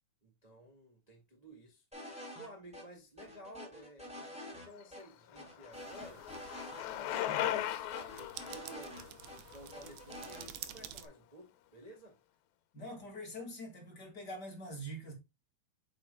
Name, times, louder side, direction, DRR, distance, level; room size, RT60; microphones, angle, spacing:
voice 1, 0.2-6.2 6.8-9.2 9.5-12.2, right 1 dB, 30° right, 0.6 m, -54 dB
sound 1, 1.9-2.5 2.7-2.8 3.2-4.7 4.9-5.0 5.4-6.8 7.1-7.2 7.5-9.4 9.7-10.5, left 1 dB, ahead, 2.3 m, -47 dB
Bicycle, 4.8-10.8, left 12 dB, 90° left, 2.6 m, -39 dB
sound 2, 5.7-11.1, right 11 dB, 80° right, 2.6 m, -51 dB
voice 2, 7.2-7.5 12.7-15.1, equal, 35° left, 2.3 m, -44 dB
8.5 x 6.5 x 2.2 m
omnidirectional pair, 4.2 m